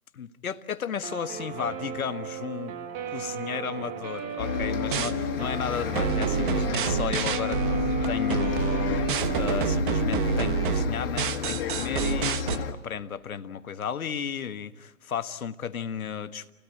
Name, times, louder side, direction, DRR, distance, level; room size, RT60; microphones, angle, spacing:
voice 1, 0.2-2.7 3.1-9.1 9.3-16.5, left 7 dB, 65° left, 1.6 m, -34 dB
Guitar, 1.0-9.7, right 8 dB, 15° right, 1.4 m, -36 dB
Bus, 4.4-12.7, left 8 dB, 40° left, 2.0 m, -31 dB
sound 1, 4.6-5.1 5.9-12.6, right 8 dB, 35° right, 1.2 m, -28 dB
29.5 x 17.5 x 9.3 m
hypercardioid pair, 145°, 46 cm